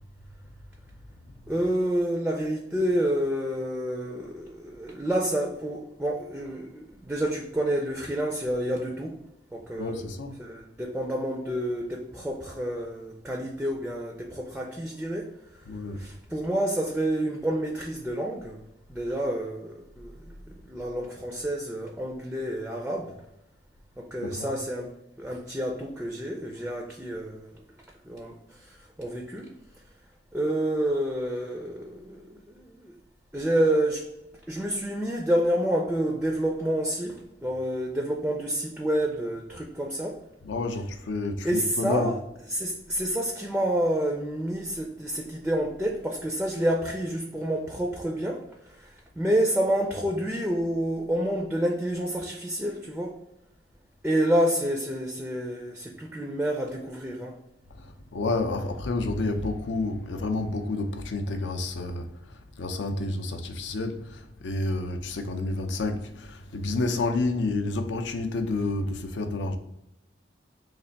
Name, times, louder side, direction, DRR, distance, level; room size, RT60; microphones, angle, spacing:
voice 1, 1.5-9.2 9.5-10.1 10.4-15.3 16.0-18.6 18.9-23.1 24.0-24.9 25.2-27.6 28.1-28.4 28.7-29.5 30.3-32.9 33.3-34.1 34.5-40.2 41.4-42.2 42.5-48.4 48.8-53.2 54.0-57.4 58.6-58.7, right 1 dB, 5° right, 0.4 m, -29 dB
voice 2, 9.8-10.4 15.7-16.0 24.2-24.6 40.4-42.1 57.8-69.6, left 2 dB, 75° left, 0.5 m, -30 dB
3.3 x 2.5 x 3.9 m
head